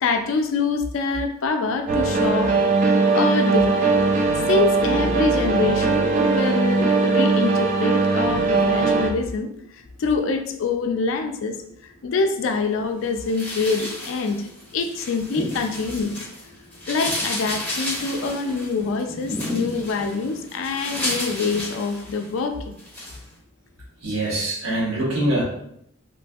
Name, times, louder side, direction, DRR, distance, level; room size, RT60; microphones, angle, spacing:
voice 1, 0.0-2.5 3.1-3.9 4.5-9.5 10.0-11.6 11.8-14.5 14.7-16.1 16.9-22.7, left 4 dB, 70° left, 6 dB, 0.3 m, -25 dB
sound 1, 1.9-9.1, right 3 dB, 40° right, 0.3 m, -20 dB
sound 2, 13.3-16.4 16.7-22.4 22.8-23.2, left 1 dB, 10° left, 0.9 m, -32 dB
voice 2, 16.5-16.9 17.9-18.1 19.2-19.3 19.6-19.8 20.7-20.8 24.0-25.4, right 1 dB, 80° right, -5 dB, 1.1 m, -26 dB
3.0 x 2.5 x 2.3 m, 0.72 s
head